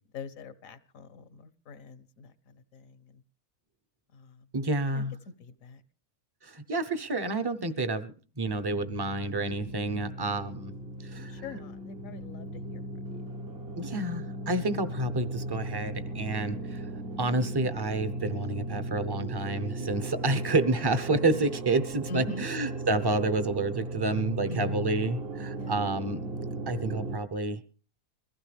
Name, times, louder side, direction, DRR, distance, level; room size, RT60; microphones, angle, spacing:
voice 1, 0.1-3.2 4.1-4.5 4.9-5.0 5.4-5.8 11.1-12.8 22.1-22.5 24.5-24.9 25.6-25.8, left 2 dB, 65° left, 13 dB, 1.3 m, -43 dB
voice 2, 4.5-5.1 6.4-10.7 11.0-11.3 13.8-16.9 17.2-26.2 26.7-27.6, right 2 dB, 20° right, 11 dB, 0.6 m, -29 dB
sound 1, 8.4-27.2, right 2 dB, 45° right, 1.0 m, -37 dB
21.5 x 15.0 x 3.4 m, 0.38 s
omnidirectional pair, 1.5 m